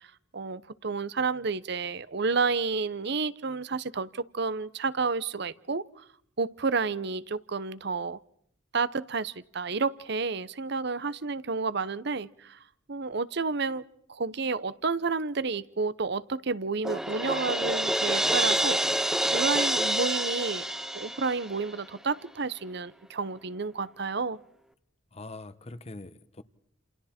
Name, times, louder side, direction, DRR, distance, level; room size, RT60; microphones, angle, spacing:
voice 1, 0.3-5.8 6.4-8.2 8.7-12.6 12.9-13.8 14.1-18.8 19.3-20.7 20.9-24.4, right 4 dB, 60° right, 0.9 m, -30 dB
Crash cymbal, 16.8-21.8, right 1 dB, 5° right, 0.9 m, -27 dB
voice 2, 25.1-26.4, left 2 dB, 35° left, 0.9 m, -43 dB
29.5 x 28.0 x 4.4 m
head